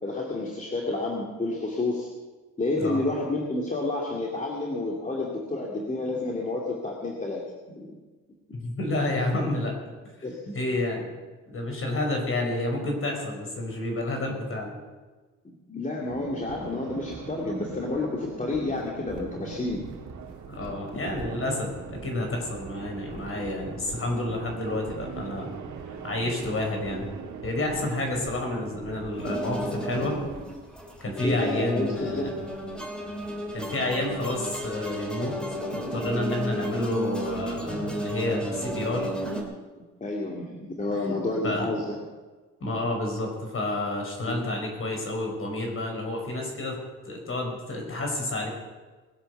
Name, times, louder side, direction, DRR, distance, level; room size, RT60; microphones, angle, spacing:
voice 1, 0.0-2.1 2.6-7.4 7.7-7.9 10.2-10.5 15.7-19.8 20.7-20.8 31.2-32.3 40.0-42.0 44.3-44.4, left 2 dB, 25° left, -2 dB, 2.5 m, -30 dB
voice 2, 8.5-9.7 10.5-11.1 11.5-14.8 20.5-25.5 26.0-27.1 27.4-30.2 31.0-32.4 33.5-35.4 35.7-39.1 41.4-41.7 42.6-46.8 47.1-48.5, left 2 dB, 45° left, 1 dB, 5.5 m, -30 dB
sound 1, 16.0-30.5, right 6 dB, 70° right, 2.1 m, -41 dB
sound 2, 29.1-39.4, right 1 dB, 5° left, 3.3 m, -33 dB
21.0 x 8.2 x 6.8 m, 1.3 s
cardioid pair, 90°, 30 cm